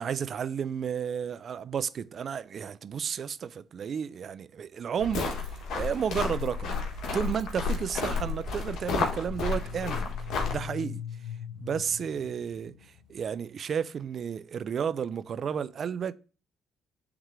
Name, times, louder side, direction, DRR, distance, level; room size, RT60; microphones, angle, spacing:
voice 1, 0.0-6.8 7.1-10.1 10.5-11.0 11.6-16.1, right 7 dB, 50° right, 0.4 m, -32 dB
sound 1, 5.0-10.6, left 4 dB, 60° left, 1.4 m, -31 dB
sound 2, 8.6-13.3, left 9 dB, 85° left, 0.5 m, -42 dB
8.0 x 3.6 x 3.2 m
hypercardioid pair, 50°, 0 cm